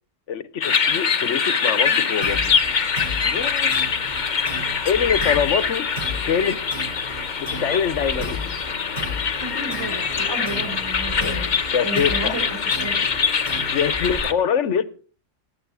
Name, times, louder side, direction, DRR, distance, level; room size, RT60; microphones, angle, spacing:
voice 1, 0.3-2.5 3.2-3.8 4.8-5.9 6.2-6.6 7.4-8.5 11.2-12.4 13.7-14.8, left 7 dB, 70° left, 1.2 m, -24 dB
sound 1, 0.6-14.3, left 6 dB, 40° left, 0.9 m, -24 dB
sound 2, 2.2-14.2, left 1 dB, 60° right, 8.3 m, -35 dB
voice 2, 9.4-12.4 12.8-13.1, right 2 dB, 15° right, 4.4 m, -33 dB
19.5 x 7.9 x 4.8 m
omnidirectional pair, 1.3 m